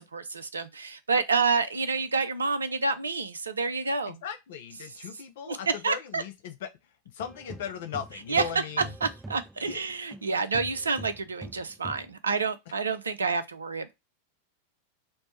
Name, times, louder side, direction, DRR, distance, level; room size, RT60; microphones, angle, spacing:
voice 1, 0.0-4.2 5.5-5.6 5.8-6.2 8.3-8.4 8.8-13.9, right 4 dB, 75° right, 0.4 m, -28 dB
voice 2, 4.1-6.7 7.1-8.9 9.6-9.8, left 8 dB, 55° left, 0.4 m, -38 dB
sound 1, 7.2-10.3 10.5-12.1, right 2 dB, 5° right, 0.3 m, -44 dB
3.2 x 2.1 x 4.1 m
figure-of-eight pair, 90°, 0 cm